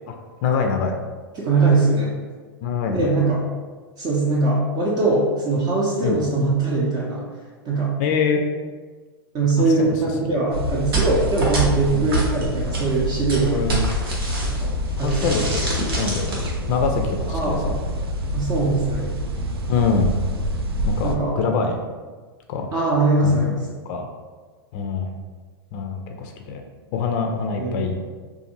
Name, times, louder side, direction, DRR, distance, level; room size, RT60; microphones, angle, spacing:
voice 1, 0.4-1.0 2.6-3.1 6.0-6.2 8.0-8.4 9.6-9.9 11.9-12.1 13.4-13.9 15.0-15.5 16.0-17.8 19.7-20.1 20.8-21.8 22.5-22.7 23.2-23.5 23.9-24.1 24.7-25.1 25.7-26.6 26.9-28.0, left 5 dB, 45° left, 4 dB, 0.4 m, -24 dB
voice 2, 1.3-2.1 2.9-3.4 4.0-7.2 7.6-7.9 9.3-13.7 14.4-14.7 15.0-15.2 17.3-17.6 18.3-19.1 21.0-21.3 22.7-23.6 27.6-27.8, right 3 dB, 30° right, -5 dB, 0.6 m, -21 dB
sound 1, 10.5-21.2, equal, 90° right, 0.4 m, -27 dB
sound 2, 10.9-14.7 15.0-16.5, right 3 dB, 75° right, 0.9 m, -26 dB
2.5 x 2.4 x 2.9 m, 1.4 s
hypercardioid pair, 105°, 13 cm